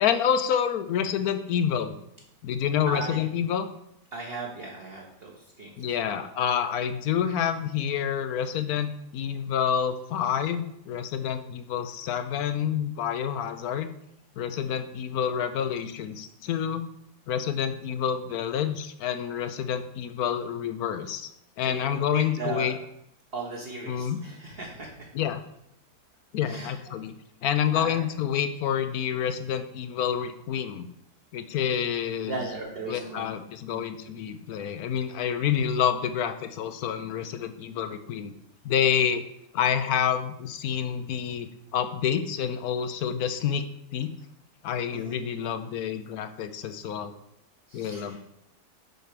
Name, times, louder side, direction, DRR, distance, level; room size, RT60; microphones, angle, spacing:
voice 1, 0.0-1.9 2.4-3.7 5.8-13.9 14.4-16.9 17.3-21.3 21.6-22.8 23.9-24.2 25.1-25.4 26.3-27.1 27.4-30.9 31.3-32.4 32.9-38.3 38.6-39.2 39.5-43.6 43.9-44.1 44.6-47.1 47.7-48.2, left 8 dB, 70° left, 10 dB, 1.0 m, -28 dB
voice 2, 2.9-3.2 4.1-6.2 21.6-22.7 23.3-25.1 26.4-26.8 27.7-28.0 32.3-33.3 33.7-33.9 44.9-45.2 47.7-48.2, right 3 dB, 40° right, -2 dB, 1.1 m, -37 dB
6.7 x 4.5 x 6.6 m, 0.77 s
omnidirectional pair, 1.8 m